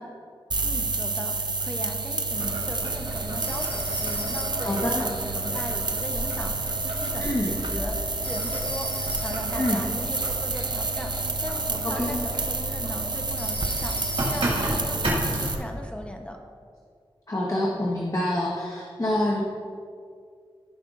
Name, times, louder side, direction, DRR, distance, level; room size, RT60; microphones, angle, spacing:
sound 1, 0.5-15.6, right 3 dB, 50° right, 0.7 m, -29 dB
voice 1, 0.6-16.4, equal, 10° left, 2 dB, 0.9 m, -38 dB
Boiling, 2.3-15.6, right 1 dB, 85° right, 2.1 m, -34 dB
Telephone, 3.4-4.8 8.2-9.6 13.4-14.8, left 1 dB, 65° left, 1.5 m, -38 dB
voice 2, 4.6-5.0 7.2-7.5 9.6-9.8 11.8-12.2 17.3-19.4, left 1 dB, 40° left, -3 dB, 1.2 m, -26 dB
15.5 x 5.6 x 2.6 m, 2.2 s
wide cardioid pair, 55°, 9 cm